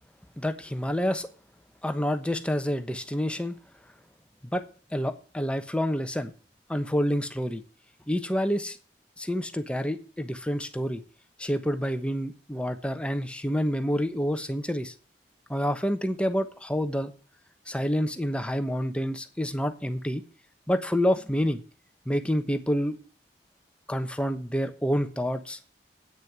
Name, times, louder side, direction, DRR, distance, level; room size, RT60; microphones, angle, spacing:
voice 1, 0.4-1.3 1.8-3.5 4.4-4.6 4.9-6.3 6.7-7.6 8.1-8.8 9.2-11.0 11.4-14.9 15.5-17.1 17.7-20.2 20.7-21.6 22.1-23.0 23.9-25.6, equal, 5° left, 8 dB, 1.0 m, -28 dB
9.0 x 6.5 x 8.0 m, 0.37 s
head